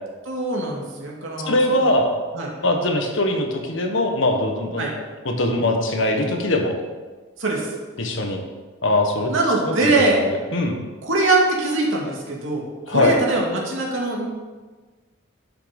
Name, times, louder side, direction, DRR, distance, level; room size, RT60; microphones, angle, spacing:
voice 1, 0.2-1.8 2.3-2.5 4.8-4.9 7.4-7.7 9.3-10.2 11.0-14.3, right 2 dB, 70° right, -2 dB, 2.4 m, -22 dB
voice 2, 1.5-2.1 2.6-4.9 5.2-6.7 8.0-8.4 8.8-9.3 9.7-10.8 12.9-13.2, left 1 dB, 65° left, 3 dB, 1.5 m, -21 dB
11.5 x 6.3 x 5.3 m, 1.4 s
head